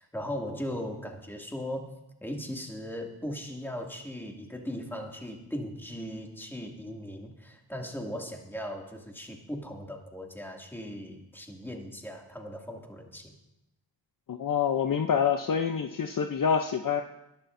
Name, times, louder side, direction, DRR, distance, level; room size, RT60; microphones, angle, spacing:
voice 1, 0.0-1.9 2.2-13.3, equal, 5° left, 1 dB, 2.4 m, -38 dB
voice 2, 14.3-17.0, left 7 dB, 45° left, 6 dB, 0.8 m, -26 dB
21.5 x 11.5 x 2.7 m, 0.90 s
cardioid pair, 65°, 45 cm